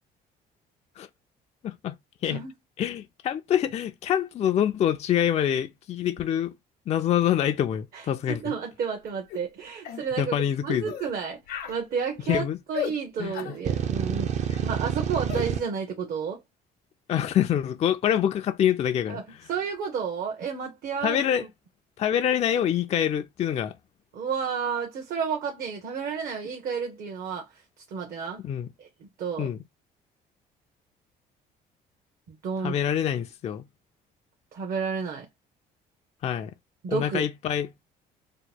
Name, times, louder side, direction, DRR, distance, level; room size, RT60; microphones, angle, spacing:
voice 1, 1.6-1.9 2.2-2.4 2.8-6.5 6.9-8.4 10.2-10.9 12.3-12.6 13.2-13.3 17.1-19.2 21.0-21.4 22.0-23.8 28.4-28.7 29.4-29.6 32.6-33.6 36.2-36.5 36.9-37.7, left 10 dB, 40° left, 0.4 m, -25 dB
voice 2, 7.9-14.4 14.6-16.4 19.1-19.2 19.5-21.5 24.1-28.4 28.8-29.5 32.3-32.8 34.5-35.3 36.8-37.3, right 6 dB, 60° right, 0.9 m, -31 dB
sound 1, 9.3-9.5 9.8-10.1 10.8-11.1 11.5-11.8 12.7-13.0 13.3-13.6 15.3-15.5, left 8 dB, 70° left, 0.8 m, -34 dB
sound 2, 13.7-15.6, right 8 dB, 45° right, 0.5 m, -28 dB
3.0 x 2.1 x 4.1 m
cardioid pair, 110°, 17 cm